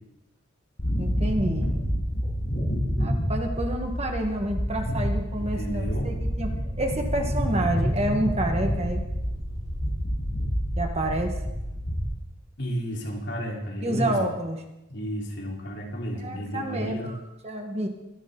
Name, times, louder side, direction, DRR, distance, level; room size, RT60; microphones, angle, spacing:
sound 1, 0.8-12.0, equal, 35° left, 7.2 m, -28 dB
voice 1, 1.0-1.6 3.0-6.5 6.8-9.0 10.8-11.4 13.8-14.6 16.2-17.9, right 1 dB, 30° right, 3 dB, 1.6 m, -29 dB
voice 2, 5.3-6.1 12.6-14.3 14.9-17.1, equal, 60° left, -2 dB, 4.0 m, -32 dB
23.5 x 12.5 x 4.0 m, 0.94 s
head